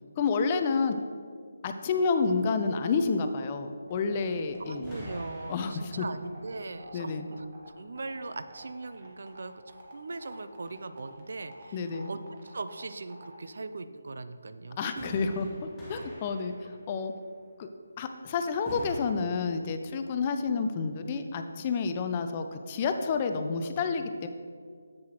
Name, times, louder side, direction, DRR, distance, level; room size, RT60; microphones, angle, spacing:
voice 1, 0.2-0.9 1.6-5.1 5.5-6.1 6.9-7.3 11.7-12.1 14.8-16.5 16.9-17.1 17.6-17.7 18.0-24.3, left 4 dB, 25° left, 7 dB, 0.4 m, -29 dB
sound 1, 3.9-13.3, right 1 dB, 40° right, 1.5 m, -50 dB
voice 2, 4.7-7.5 7.8-15.2 15.5-15.6 16.0-16.1 20.5-20.6, right 3 dB, 60° right, 11 dB, 0.4 m, -40 dB
sound 2, 4.8-6.5 15.0-17.2 18.7-19.0, equal, 5° left, 1.5 m, -45 dB
7.7 x 7.3 x 3.0 m, 2.1 s
figure-of-eight pair, 155°, 0 cm